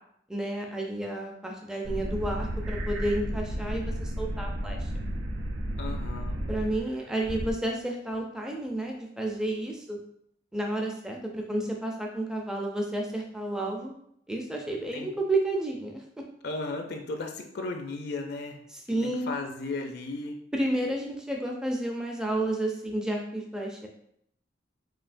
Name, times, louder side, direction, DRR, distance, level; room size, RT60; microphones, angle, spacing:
voice 1, 0.3-4.8 6.5-10.0 10.5-13.9 14.3-16.2 18.7-19.3 20.5-23.9, right 1 dB, 5° right, 0 dB, 0.4 m, -31 dB
sound 1, 1.8-6.8 7.2-7.5, equal, 85° right, 0.6 m, -32 dB
voice 2, 5.8-6.4 14.9-15.1 16.4-18.6 19.0-20.4, left 3 dB, 55° left, 4 dB, 0.4 m, -35 dB
5.6 x 2.6 x 2.5 m, 0.71 s
head